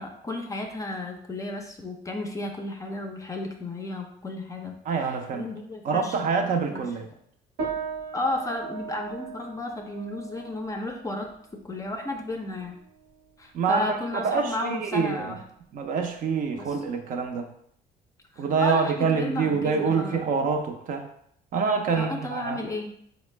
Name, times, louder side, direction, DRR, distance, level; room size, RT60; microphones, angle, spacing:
voice 1, 0.0-4.7 5.3-6.2 6.7-6.8 8.1-11.3 11.6-12.8 13.4-15.4 16.5-16.7 18.4-20.2 21.9-22.9, left 1 dB, 20° left, 3 dB, 0.5 m, -33 dB
voice 2, 4.8-5.5 5.8-7.1 13.5-15.4 15.7-17.5 18.4-21.1 21.5-22.6, right 5 dB, 55° right, 4 dB, 0.5 m, -26 dB
sound 1, 7.6-17.2, right 6 dB, 75° right, 0.9 m, -40 dB
4.2 x 2.0 x 3.2 m, 0.68 s
cardioid pair, 110°, 17 cm